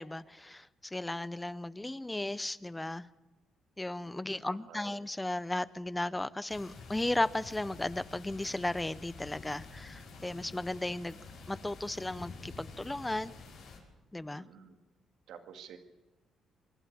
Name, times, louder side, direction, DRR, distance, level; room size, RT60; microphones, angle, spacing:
voice 1, 0.0-3.1 3.8-11.2 11.5-13.4 14.1-14.4, left 1 dB, 10° left, 0.6 m, -35 dB
voice 2, 4.0-5.0 14.3-14.8 15.3-15.8, right 8 dB, 80° right, 2.0 m, -51 dB
sound 1, 6.5-13.8, left 4 dB, 80° left, 5.9 m, -49 dB
25.0 x 12.0 x 8.8 m
cardioid pair, 90°, 0 cm